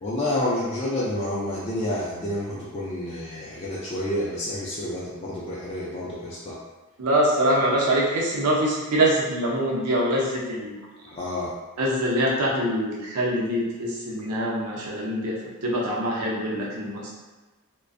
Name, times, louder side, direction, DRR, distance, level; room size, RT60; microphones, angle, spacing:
voice 1, 0.0-6.6 11.1-11.5, left 1 dB, 25° left, -7 dB, 0.3 m, -29 dB
voice 2, 7.0-10.8 11.8-15.4 15.6-17.1, right 1 dB, 90° right, -3 dB, 0.6 m, -24 dB
2.4 x 2.2 x 2.5 m, 1.3 s
head